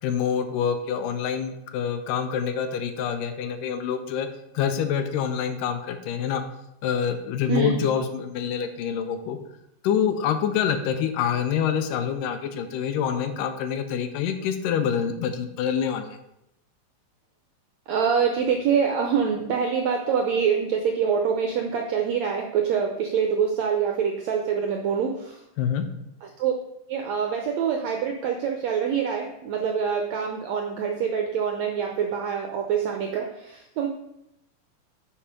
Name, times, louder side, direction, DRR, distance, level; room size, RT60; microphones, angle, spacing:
voice 1, 0.0-4.3 4.6-6.4 6.8-9.4 9.8-16.2 25.6-25.9, left 8 dB, 85° left, 8 dB, 2.3 m, -26 dB
voice 2, 17.9-25.4 26.2-26.5 26.9-33.9, right 7 dB, 80° right, 2 dB, 1.5 m, -25 dB
7.4 x 4.9 x 5.2 m, 0.83 s
omnidirectional pair, 3.8 m